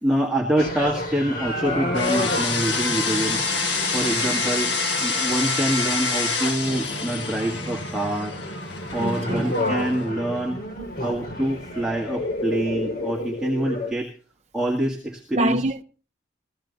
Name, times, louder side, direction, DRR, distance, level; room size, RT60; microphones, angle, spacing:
voice 1, 0.0-3.5 3.9-8.4 8.9-10.6 11.0-14.1 14.5-15.6, right 1 dB, 5° right, 1.9 m, -26 dB
sound 1, 0.6-13.9, left 1 dB, 50° left, 2.9 m, -31 dB
sound 2, 1.9-10.1, left 4 dB, 70° left, 2.2 m, -27 dB
voice 2, 9.0-9.5 15.3-15.8, right 1 dB, 35° right, 0.9 m, -25 dB
16.5 x 14.5 x 4.0 m
head